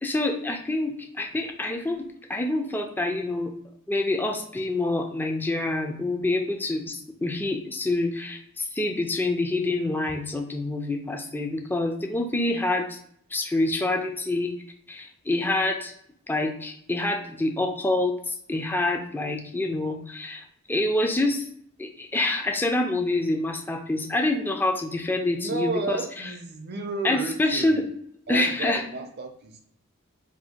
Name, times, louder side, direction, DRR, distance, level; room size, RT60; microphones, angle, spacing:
voice 1, 0.0-3.5 3.9-13.0 13.3-14.5 14.9-15.9 16.3-21.5 21.8-26.3 27.0-27.8 28.3-28.8, left 2 dB, 10° left, 3 dB, 0.4 m, -26 dB
voice 2, 25.3-27.9 28.3-29.6, right 3 dB, 50° right, 5 dB, 0.6 m, -32 dB
2.7 x 2.7 x 4.2 m, 0.66 s
head